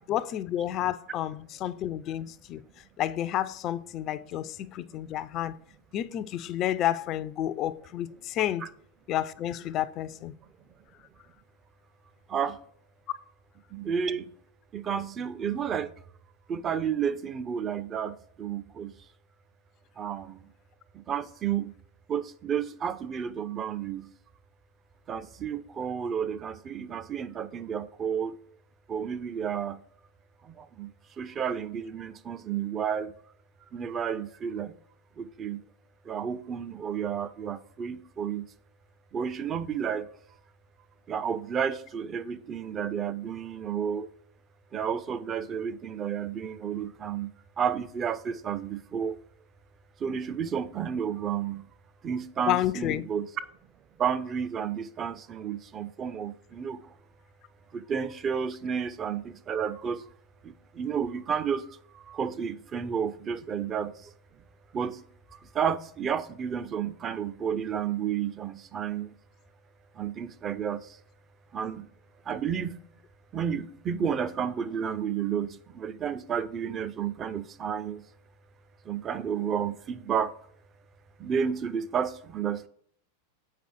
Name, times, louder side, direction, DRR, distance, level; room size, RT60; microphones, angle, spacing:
voice 1, 0.1-2.6 3.0-5.6 5.9-8.7 9.1-10.3 52.5-53.0, left 12 dB, 35° left, 0.4 m, -30 dB
voice 2, 13.7-14.3 14.7-15.9 16.5-18.9 20.0-20.4 21.0-21.7 22.1-24.1 25.1-28.3 28.9-29.8 30.5-30.9 31.2-33.1 33.7-34.7 35.2-35.6 36.1-38.5 39.1-40.1 41.1-44.1 44.7-47.3 47.6-49.2 50.0-51.6 52.0-53.3 54.0-56.8 57.7-60.0 60.8-61.6 62.0-63.9 64.7-65.0 65.5-69.1 70.0-70.8 71.5-71.9 72.3-72.7 73.3-78.0 78.9-80.3 81.2-82.7, right 7 dB, 25° right, 0.5 m, -31 dB
7.6 x 5.1 x 4.6 m
figure-of-eight pair, 90°, 0 cm